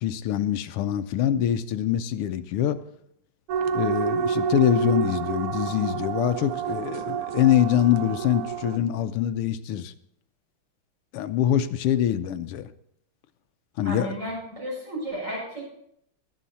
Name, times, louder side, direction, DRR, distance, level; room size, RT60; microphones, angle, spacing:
voice 1, 0.0-2.8 3.7-9.9 11.1-12.7 13.8-14.2, left 10 dB, 90° left, 11 dB, 1.7 m, -24 dB
sound 1, 3.5-8.8, right 6 dB, 90° right, 1.7 m, -28 dB
voice 2, 13.8-15.7, right 1 dB, 50° right, -4 dB, 7.8 m, -33 dB
21.5 x 7.5 x 4.2 m, 0.72 s
omnidirectional pair, 2.4 m